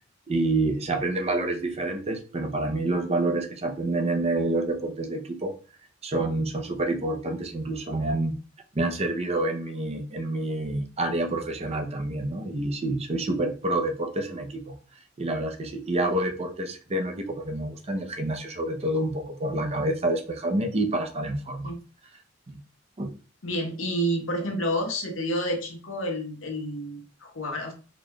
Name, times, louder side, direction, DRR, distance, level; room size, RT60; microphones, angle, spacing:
voice 1, 0.3-5.5 6.0-8.4 8.7-14.7 15.2-21.7 22.5-22.6 23.0-23.1, right 2 dB, 35° right, 5 dB, 0.6 m, -28 dB
voice 2, 23.4-27.7, equal, 85° left, 2 dB, 1.0 m, -29 dB
4.0 x 2.3 x 3.1 m, 0.35 s
head